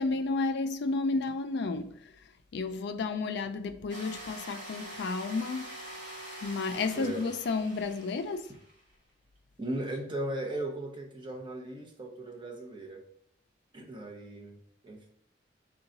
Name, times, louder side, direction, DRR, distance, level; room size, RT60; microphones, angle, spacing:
voice 1, 0.0-2.0 2.5-5.8 6.4-8.5, left 3 dB, 65° left, 0.4 m, -32 dB
sound 1, 3.9-8.9, right 1 dB, 45° right, 1.2 m, -45 dB
voice 2, 9.6-13.0 13.7-14.6 14.8-15.1, right 1 dB, 30° right, 0.7 m, -37 dB
3.8 x 2.3 x 3.9 m
head